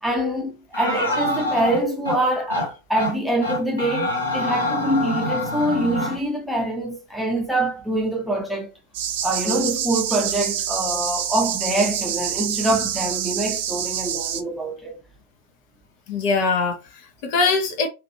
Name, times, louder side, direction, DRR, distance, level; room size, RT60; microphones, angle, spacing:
voice 1, 0.0-8.7 9.2-15.0, right 1 dB, 5° right, 0.9 m, -24 dB
sound 1, 0.7-2.2 2.5-2.7 3.0-3.1 3.4-6.2, left 1 dB, 85° left, 1.2 m, -26 dB
sound 2, 8.9-14.4, right 9 dB, 50° right, 0.4 m, -27 dB
voice 2, 16.1-17.9, left 4 dB, 45° left, 0.6 m, -22 dB
2.5 x 2.5 x 2.8 m
figure-of-eight pair, 90°, 0 cm